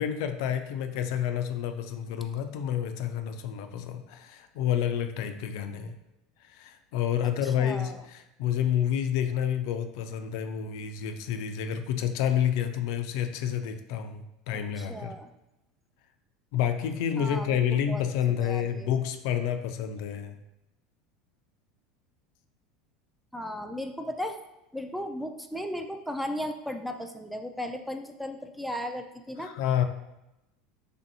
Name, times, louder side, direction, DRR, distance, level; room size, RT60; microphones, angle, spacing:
voice 1, 0.0-5.9 6.5-15.2 16.5-20.4 29.4-29.8, left 9 dB, 70° left, 7 dB, 0.4 m, -29 dB
voice 2, 7.2-8.0 14.5-15.3 17.2-18.0 18.3-18.9 23.3-24.4 24.7-29.5, equal, ahead, 5 dB, 0.4 m, -36 dB
3.4 x 2.6 x 4.0 m, 0.91 s
supercardioid pair, 100°, 3 cm